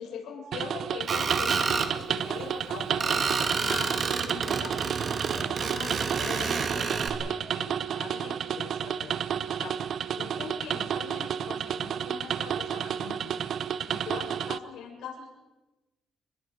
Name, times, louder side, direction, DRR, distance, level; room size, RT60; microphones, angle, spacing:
voice 1, 0.0-3.2 3.6-9.7 10.2-13.5 13.9-15.3, left 7 dB, 90° left, 1 dB, 6.9 m, -42 dB
sound 1, 0.5-14.6, right 8 dB, 65° right, 0.8 m, -31 dB
Screech, 1.1-1.9 3.0-7.1, right 5 dB, 45° right, 2.6 m, -29 dB
29.5 x 21.0 x 5.1 m, 1.1 s
cardioid pair, 90°, 0 cm